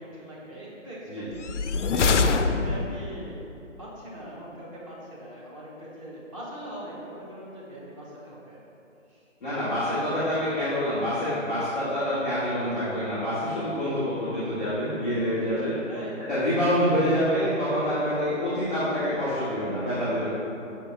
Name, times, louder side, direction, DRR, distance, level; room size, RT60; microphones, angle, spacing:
voice 1, 0.0-1.5 2.2-3.5 3.8-8.6 9.1-9.2 9.8-10.2 15.9-16.5 16.8-17.2, right 1 dB, 25° right, -6 dB, 1.2 m, -41 dB
sound 1, 1.4-3.2, left 4 dB, 70° left, 0.5 m, -24 dB
voice 2, 1.8-2.2 9.4-15.8 16.3-20.3, equal, 5° left, -12 dB, 0.7 m, -26 dB
6.1 x 3.7 x 5.5 m, 2.8 s
figure-of-eight pair, 160°, 38 cm